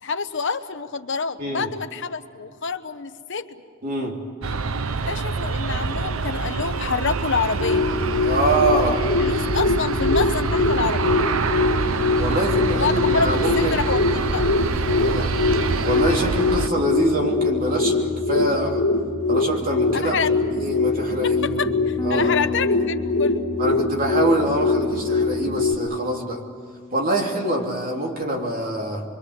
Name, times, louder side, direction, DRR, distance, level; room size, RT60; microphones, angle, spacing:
voice 1, 0.0-3.6 5.1-7.9 8.8-11.2 12.7-14.4 19.9-20.3 21.2-23.4, left 5 dB, 60° left, 10 dB, 1.0 m, -27 dB
voice 2, 3.8-4.2 8.2-9.0 12.2-13.8 14.9-15.3 15.9-18.8 19.3-20.2 20.5-21.8 22.0-22.3 23.6-26.4 26.9-29.0, right 1 dB, 45° right, 0 dB, 3.3 m, -25 dB
Aircraft, 4.4-16.7, right 4 dB, 80° right, 0.8 m, -26 dB
sound 1, 7.4-25.7, left 3 dB, 80° left, 2.6 m, -23 dB
Bass guitar, 22.0-28.2, left 3 dB, 15° left, 1.0 m, -35 dB
26.5 x 23.5 x 8.2 m, 2.2 s
head